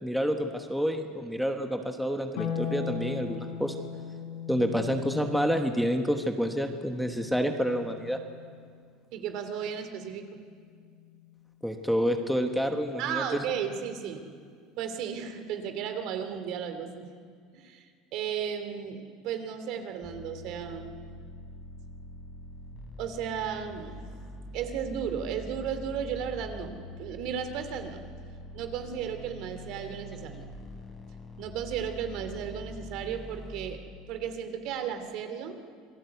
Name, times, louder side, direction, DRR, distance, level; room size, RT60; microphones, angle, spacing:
voice 1, 0.0-3.7 4.5-8.2 11.6-13.4, equal, ahead, 4 dB, 1.2 m, -28 dB
Harp, 2.4-8.9 10.5-11.5, left 7 dB, 75° left, 3.6 m, -39 dB
voice 2, 9.1-10.4 13.0-14.2 14.8-17.1 17.5-17.8 18.1-21.0 23.0-24.0 24.5-28.0 28.5-30.5 31.4-33.8 34.1-35.5, right 8 dB, 55° right, 8 dB, 2.5 m, -34 dB
sound 1, 20.0-33.8, left 1 dB, 20° left, 3.7 m, -44 dB
27.0 x 18.0 x 8.2 m, 2.1 s
cardioid pair, 140°, 0 cm